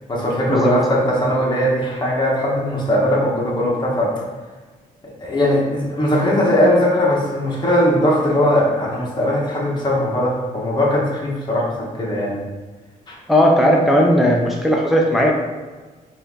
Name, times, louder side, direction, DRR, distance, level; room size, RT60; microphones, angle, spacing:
voice 1, 0.1-4.1 5.0-12.4 13.1-13.2, left 1 dB, 30° left, -4 dB, 1.0 m, -19 dB
voice 2, 13.3-15.3, equal, ahead, -1 dB, 0.4 m, -16 dB
4.2 x 2.5 x 3.6 m, 1.3 s
cardioid pair, 110°, 15 cm